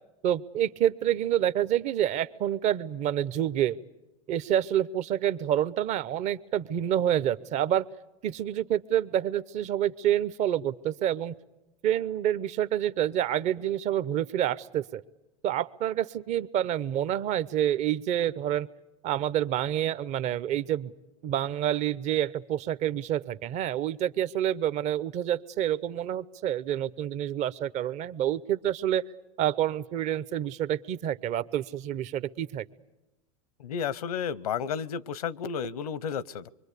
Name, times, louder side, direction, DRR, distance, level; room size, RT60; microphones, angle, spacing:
voice 1, 0.2-3.8 4.3-7.8 8.2-11.3 11.8-15.0 15.4-18.7 19.0-20.9 21.2-29.0 29.4-32.6, right 11 dB, 40° right, 17 dB, 0.8 m, -28 dB
voice 2, 33.6-36.5, left 7 dB, 85° left, 23 dB, 0.8 m, -32 dB
25.5 x 23.5 x 8.3 m, 1.0 s
hypercardioid pair, 115°, 19 cm